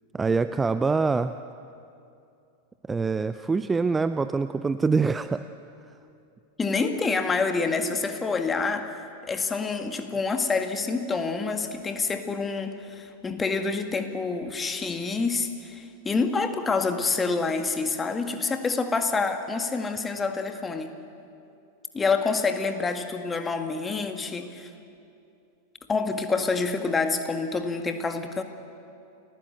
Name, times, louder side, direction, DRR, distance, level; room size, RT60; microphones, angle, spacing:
voice 1, 0.1-1.4 2.9-5.4, right 4 dB, 15° right, 13 dB, 0.5 m, -25 dB
voice 2, 6.6-8.9 9.2-20.9 21.9-24.7 25.9-28.4, left 4 dB, 15° left, 7 dB, 1.9 m, -27 dB
29.5 x 15.5 x 8.1 m, 2.6 s
figure-of-eight pair, 90°, 0 cm